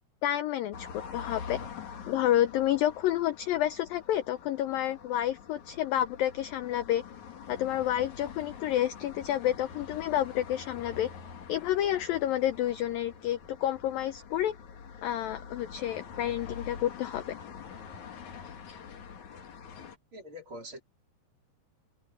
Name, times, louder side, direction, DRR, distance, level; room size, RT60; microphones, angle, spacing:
voice 1, 0.2-1.6 2.1-7.0 7.5-11.1 11.5-14.6 15.0-17.2, left 12 dB, 80° left, 2.1 m, -29 dB
sound 1, 0.7-20.0, left 6 dB, 50° left, 3.3 m, -45 dB
voice 2, 20.1-20.8, equal, 30° right, 4.5 m, -43 dB
omnidirectional pair, 5.0 m